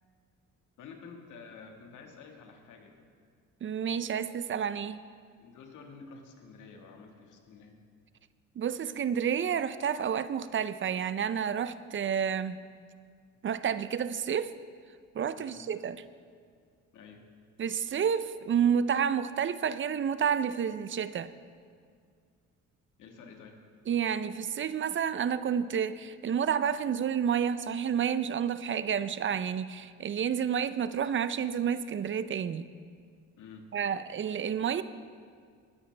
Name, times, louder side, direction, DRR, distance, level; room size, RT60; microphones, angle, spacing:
voice 1, 0.8-3.1 5.4-7.8 15.3-15.7 16.9-17.3 23.0-23.6 33.4-33.7, left 5 dB, 85° left, 2 dB, 1.7 m, -50 dB
voice 2, 3.6-5.0 8.6-12.6 13.4-14.5 15.1-16.0 17.6-21.3 23.9-32.6 33.7-34.8, right 8 dB, 40° right, 14 dB, 0.5 m, -30 dB
19.5 x 9.8 x 3.3 m, 2.1 s
cardioid pair, 90°, 30 cm